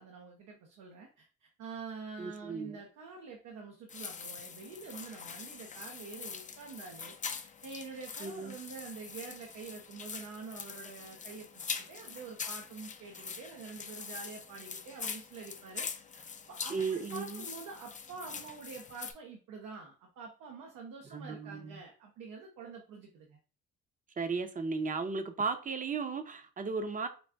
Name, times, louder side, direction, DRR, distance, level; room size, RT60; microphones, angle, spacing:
voice 1, 0.0-7.1 7.4-23.4, right 4 dB, 90° right, 0.8 m, -47 dB
voice 2, 2.2-2.8 8.2-8.5 16.7-17.5 21.1-21.8 24.2-27.1, right 4 dB, 25° right, 0.6 m, -35 dB
sound 1, 3.9-19.1, left 6 dB, 25° left, 0.4 m, -43 dB
4.1 x 2.4 x 3.3 m
cardioid pair, 90°, 30 cm